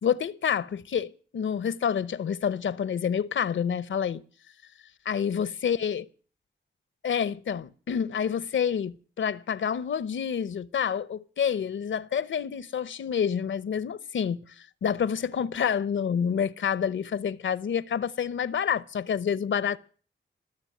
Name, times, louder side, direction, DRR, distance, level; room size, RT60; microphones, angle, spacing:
voice 1, 0.0-4.2 5.0-6.1 7.0-14.4 14.8-19.8, left 7 dB, 80° left, 0.8 m, -28 dB
20.0 x 7.1 x 9.2 m
cardioid pair, 45°, 19 cm